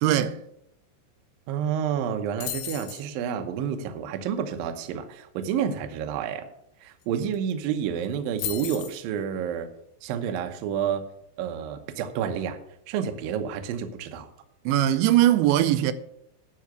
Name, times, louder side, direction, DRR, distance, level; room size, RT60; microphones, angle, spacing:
voice 1, 0.0-0.4 14.7-15.9, right 13 dB, 90° right, 2.9 m, -20 dB
voice 2, 1.5-6.5 6.8-9.7 10.0-11.1 11.4-12.6 12.9-14.3, right 8 dB, 75° right, 2.2 m, -29 dB
sound 1, 2.4-3.1 7.0-7.1 7.3-7.7 8.4-9.0, left 11 dB, 75° left, 2.8 m, -34 dB
11.5 x 4.7 x 7.8 m
omnidirectional pair, 5.1 m